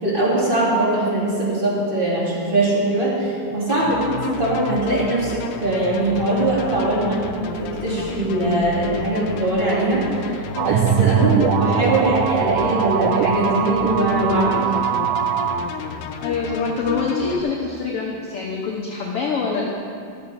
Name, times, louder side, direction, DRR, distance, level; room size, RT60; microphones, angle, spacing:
voice 1, 0.0-7.2 7.6-14.7, right 1 dB, 20° right, -6 dB, 2.0 m, -21 dB
sound 1, 3.7-17.4, left 6 dB, 85° left, 2.2 m, -32 dB
sound 2, 10.6-15.6, right 8 dB, 90° right, 2.2 m, -21 dB
voice 2, 16.2-19.7, left 4 dB, 65° left, -2 dB, 1.6 m, -25 dB
12.0 x 7.4 x 5.4 m, 2.4 s
omnidirectional pair, 3.6 m